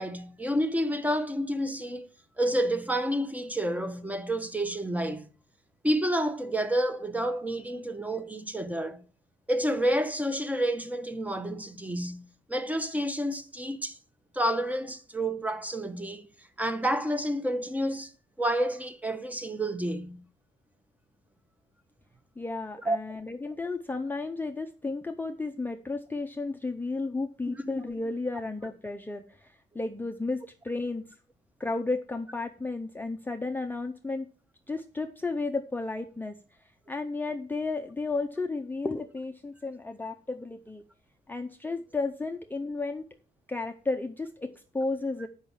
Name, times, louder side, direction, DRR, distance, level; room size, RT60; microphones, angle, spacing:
voice 1, 0.0-2.1 2.4-5.3 5.8-9.0 9.5-14.0 14.3-16.3 16.6-18.1 18.4-20.2 22.8-23.0 27.7-28.0, right 1 dB, 5° right, 0.9 m, -29 dB
voice 2, 22.4-31.0 31.6-34.3 34.7-40.8 41.3-43.1 43.5-45.3, left 3 dB, 10° left, 0.6 m, -33 dB
6.7 x 5.5 x 7.2 m
cardioid pair, 90°, 20 cm